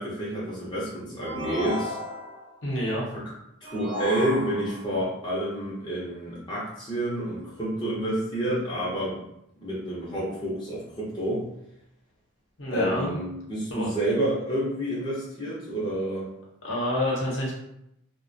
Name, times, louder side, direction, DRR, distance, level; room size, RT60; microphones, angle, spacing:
voice 1, 0.0-2.0 3.1-3.2 3.6-9.2 9.6-11.4 12.7-16.3, right 1 dB, 20° left, -8 dB, 0.6 m, -29 dB
sound 1, 1.2-2.5 3.6-4.9, left 1 dB, 25° right, 0.5 m, -33 dB
voice 2, 2.6-3.0 12.6-13.1 13.7-13.9 16.6-17.5, left 1 dB, 65° left, -4 dB, 0.8 m, -27 dB
2.3 x 2.1 x 2.5 m, 0.79 s
head